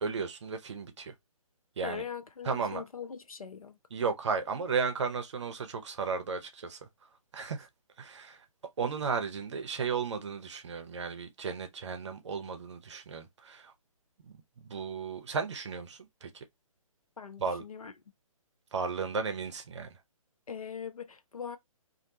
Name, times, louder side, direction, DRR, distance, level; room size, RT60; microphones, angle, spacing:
voice 1, 0.0-1.1 1.8-2.0 2.4-2.8 3.9-6.8 7.3-7.7 8.0-8.4 8.8-13.7 14.2-14.4 14.7-16.4 17.4-17.6 18.7-20.0, right 5 dB, 55° right, 0.7 m, -34 dB
voice 2, 1.8-3.8 17.2-17.9 20.5-21.6, left 7 dB, 75° left, 0.6 m, -41 dB
2.6 x 2.2 x 2.6 m
figure-of-eight pair, 135°, 18 cm